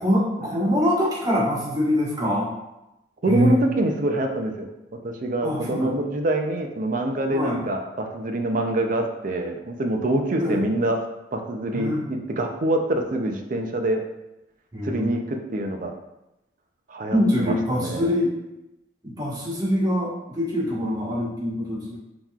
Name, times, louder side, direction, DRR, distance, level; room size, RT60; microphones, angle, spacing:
voice 1, 0.0-2.5 3.3-3.6 5.4-5.9 7.3-7.6 10.4-10.6 11.7-12.1 14.7-15.1 17.1-18.3 19.0-22.0, equal, 20° right, -7 dB, 1.3 m, -24 dB
voice 2, 3.2-11.0 11.3-14.0 14.8-15.9 16.9-18.1, right 1 dB, 50° right, 3 dB, 0.5 m, -25 dB
5.5 x 3.0 x 2.4 m, 0.93 s
head